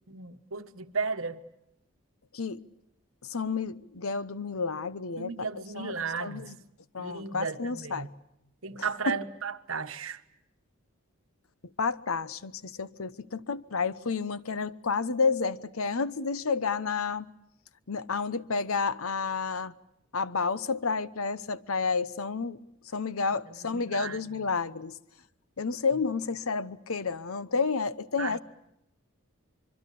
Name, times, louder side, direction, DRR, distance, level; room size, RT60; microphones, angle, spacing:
voice 1, 0.1-1.4 5.2-6.5 7.0-8.1 8.6-10.2 23.5-24.2 28.2-28.4, right 5 dB, 65° right, 1.3 m, -35 dB
voice 2, 3.2-5.3 5.8-5.9 6.2-6.5 6.9-8.1 8.8-9.2 11.8-17.3 17.9-19.7 20.1-22.6 22.9-25.0 25.6-28.4, left 4 dB, 70° left, 0.9 m, -30 dB
25.5 x 23.5 x 8.5 m
head